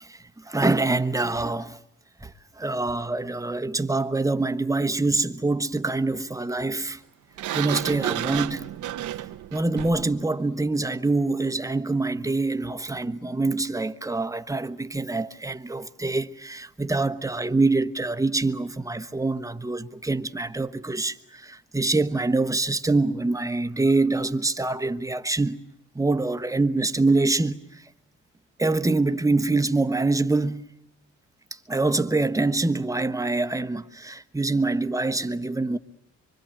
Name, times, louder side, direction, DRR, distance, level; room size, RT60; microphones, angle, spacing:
voice 1, 0.0-1.8 2.2-7.0 7.5-8.7 9.5-25.6 25.9-27.9 28.6-30.7 31.5-35.8, right 3 dB, 10° right, 1.2 m, -25 dB
Sliding door, 7.4-10.1, right 13 dB, 75° right, 1.0 m, -31 dB
25.0 x 24.5 x 9.0 m
cardioid pair, 90°, 30 cm